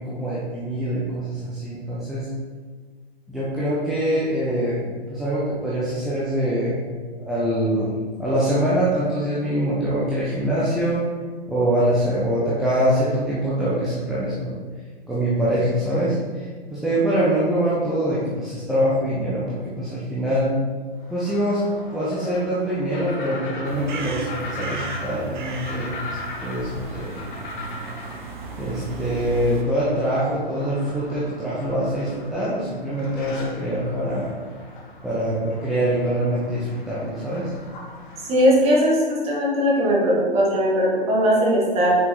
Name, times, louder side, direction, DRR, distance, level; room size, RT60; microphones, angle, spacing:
voice 1, 0.0-2.3 3.3-6.8 7.2-7.9 8.2-11.0 11.5-14.5 15.1-20.5 21.1-21.6 21.9-26.2 26.4-27.2 28.6-34.3 35.0-37.5, right 1 dB, ahead, -9 dB, 0.4 m, -24 dB
sound 1, 21.0-38.7, left 2 dB, 50° left, 1.4 m, -39 dB
sound 2, 23.6-29.6, right 4 dB, 50° right, 0.9 m, -36 dB
voice 2, 38.3-42.0, equal, 20° right, -4 dB, 1.6 m, -19 dB
6.0 x 4.5 x 3.9 m, 1.5 s
figure-of-eight pair, 120°, 31 cm